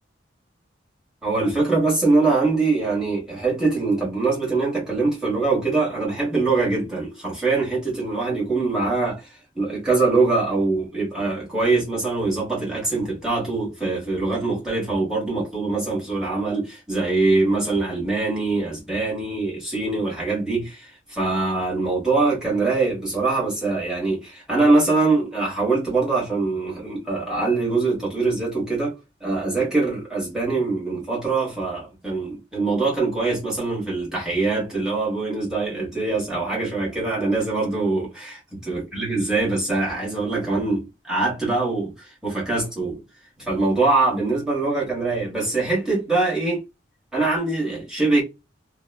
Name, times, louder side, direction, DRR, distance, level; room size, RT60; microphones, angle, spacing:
voice 1, 1.2-43.0 43.4-46.6 47.1-48.2, right 3 dB, 5° right, 1.3 m, -23 dB
2.9 x 2.2 x 2.3 m
head